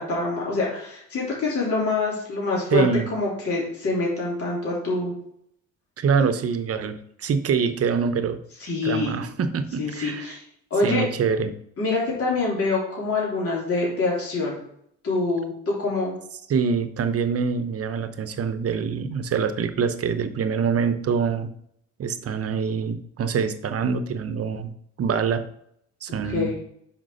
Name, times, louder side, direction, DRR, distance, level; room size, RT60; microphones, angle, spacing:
voice 1, 0.0-5.1 8.6-9.1 9.8-10.4 10.7-11.0 11.8-14.6 15.0-16.2 26.2-26.6, left 3 dB, 50° left, -5 dB, 3.5 m, -25 dB
voice 2, 2.7-3.1 6.0-8.4 8.8-10.4 10.8-11.6 16.5-21.5 22.0-24.7 25.0-25.4 26.0-26.6, right 6 dB, 50° right, 10 dB, 0.8 m, -25 dB
6.0 x 5.2 x 6.3 m, 0.71 s
cardioid pair, 90°, 30 cm